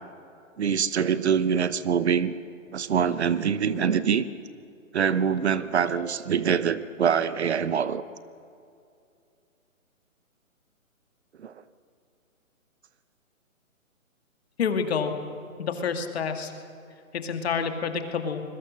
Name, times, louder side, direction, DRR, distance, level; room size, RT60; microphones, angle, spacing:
voice 1, 0.6-2.3 2.7-4.3 4.9-8.0 11.4-11.5, right 7 dB, 50° right, 15 dB, 0.9 m, -24 dB
Ringtone, 5.4-6.5, right 4 dB, 85° right, 3.8 m, -43 dB
voice 2, 14.6-15.1 15.6-16.5 17.2-18.4, left 6 dB, 45° left, 6 dB, 2.4 m, -28 dB
26.0 x 21.5 x 6.6 m, 2.5 s
hypercardioid pair, 155°, 42 cm